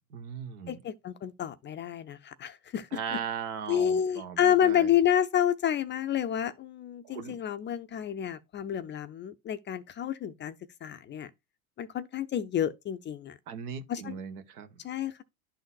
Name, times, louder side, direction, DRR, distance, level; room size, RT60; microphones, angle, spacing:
voice 1, 0.1-0.8 2.9-4.9 7.0-7.4 13.5-14.7, right 7 dB, 80° right, 1.3 m, -38 dB
voice 2, 0.7-3.2 3.7-10.6 10.8-11.3 11.8-13.4 13.9-14.2 14.8-15.2, left 9 dB, 25° left, 0.4 m, -29 dB
11.5 x 3.9 x 2.3 m
hypercardioid pair, 90°, 44 cm